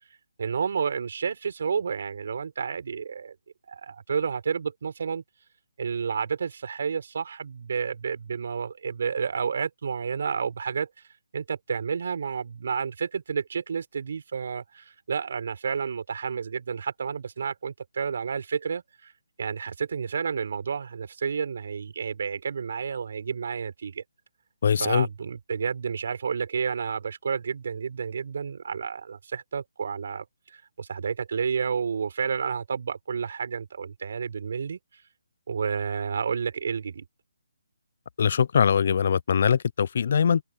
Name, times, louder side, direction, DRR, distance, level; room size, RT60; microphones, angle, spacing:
voice 1, 0.4-3.3 3.7-5.2 5.8-10.9 11.3-19.1 19.4-24.0 24.8-30.2 30.5-34.8 35.5-37.0, right 6 dB, 60° right, 5.1 m, -30 dB
voice 2, 24.6-25.1 38.2-40.4, left 7 dB, 50° left, 0.5 m, -22 dB
hypercardioid pair, 155°, 0 cm